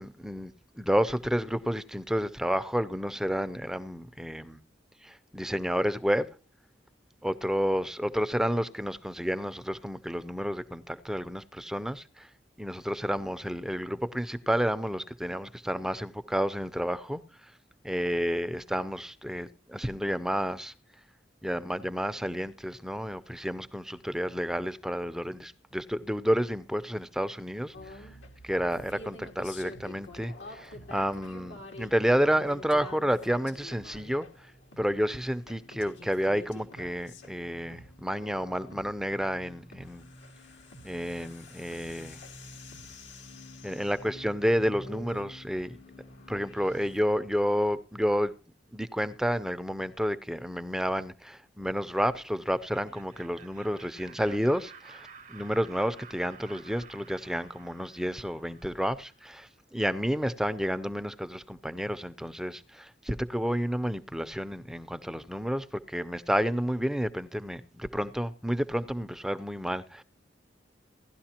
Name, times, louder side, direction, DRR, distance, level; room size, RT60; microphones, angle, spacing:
voice 1, 0.0-4.6 5.0-6.3 7.2-12.3 12.6-17.5 17.8-20.7 21.4-28.1 28.4-34.5 34.8-40.1 40.8-42.2 43.6-45.8 46.3-48.3 48.7-70.0, equal, 5° right, 0.5 m, -30 dB
sound 1, 27.7-47.0, left 1 dB, 85° left, 2.1 m, -47 dB
Laughter, 52.5-59.3, right 5 dB, 45° right, 0.8 m, -52 dB
17.0 x 12.0 x 2.9 m
head